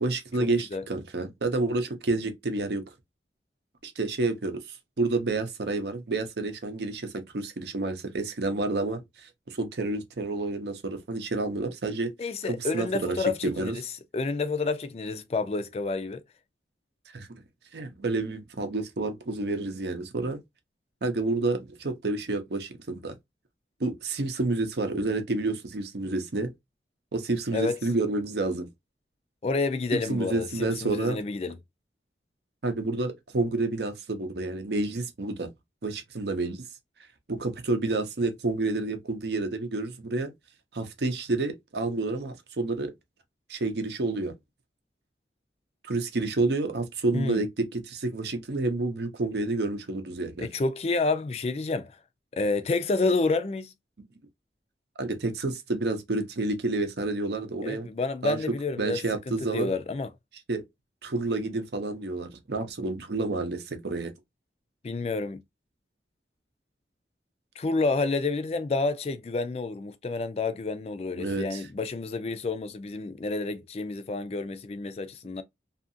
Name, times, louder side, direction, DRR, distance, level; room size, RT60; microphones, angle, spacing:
voice 1, 0.0-2.8 3.8-12.1 12.4-13.7 17.1-17.4 17.7-20.4 21.0-23.1 23.8-26.5 27.1-28.7 29.9-31.2 32.6-35.5 35.8-36.6 37.3-40.3 40.7-42.9 43.5-44.3 45.8-50.5 55.0-57.9 58.2-58.4 58.8-59.7 60.5-60.6 61.0-64.1 71.2-71.6, right 2 dB, 70° right, 0.6 m, -29 dB
voice 2, 12.2-13.8 14.1-16.2 27.5-27.8 29.4-31.6 47.1-47.4 50.4-51.9 52.3-53.7 57.6-59.0 59.3-60.1 64.8-65.4 67.6-75.4, left 3 dB, 35° left, 0.3 m, -29 dB
2.7 x 2.5 x 2.5 m
head